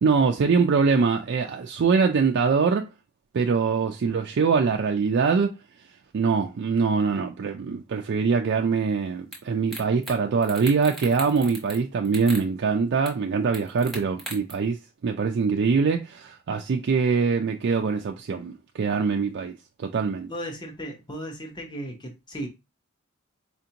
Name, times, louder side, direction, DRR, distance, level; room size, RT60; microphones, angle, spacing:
voice 1, 0.0-2.9 3.3-5.5 6.1-14.8 15.0-19.5 19.8-20.3, right 5 dB, 55° right, 0.4 m, -23 dB
sound 1, 9.3-9.4 9.7-10.2 10.4-11.8 12.1-12.4 13.1-13.2 13.5-14.5, right 1 dB, ahead, 1.1 m, -37 dB
voice 2, 20.3-22.5, equal, 20° left, 0.8 m, -35 dB
4.3 x 2.5 x 2.8 m
head